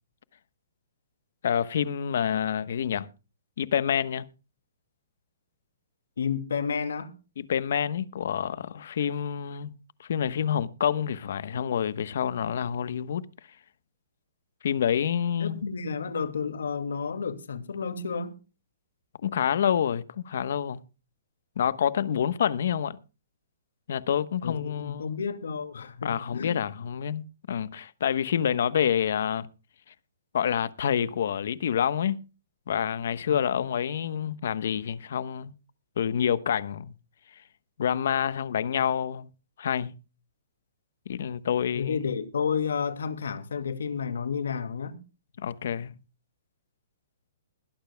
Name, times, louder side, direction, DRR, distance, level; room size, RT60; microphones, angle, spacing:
voice 1, 1.4-3.1 3.6-4.3 7.4-9.7 10.0-13.2 14.6-15.6 19.2-20.8 21.6-23.0 23.9-25.2 26.0-29.5 30.3-32.2 32.7-35.5 36.0-36.9 37.8-39.3 39.6-39.9 41.1-42.0 45.4-46.0, left 8 dB, 60° left, 1.0 m, -27 dB
voice 2, 6.2-7.1 15.4-18.4 24.4-26.6 41.7-45.0, left 6 dB, 90° left, 2.3 m, -31 dB
21.5 x 12.0 x 2.2 m
hypercardioid pair, 160°, 0 cm